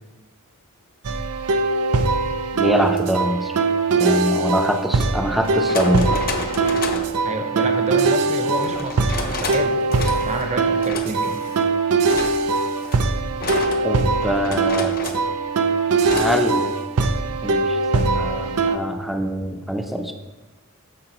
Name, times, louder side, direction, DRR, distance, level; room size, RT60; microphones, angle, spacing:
sound 1, 1.0-18.8, right 3 dB, 90° right, 0.6 m, -21 dB
voice 1, 2.5-3.5 4.0-6.2 13.8-15.0 16.1-16.7 17.4-20.1, equal, ahead, 4 dB, 0.6 m, -24 dB
sound 2, 2.8-3.0 4.6-4.7 5.4-7.2 8.6-9.6 9.9-10.5 10.8-11.7 12.1-15.3 16.0-16.4, left 3 dB, 40° left, 0.8 m, -31 dB
voice 2, 7.2-11.4, right 2 dB, 30° right, 5 dB, 0.8 m, -29 dB
12.5 x 4.9 x 3.0 m, 1.2 s
head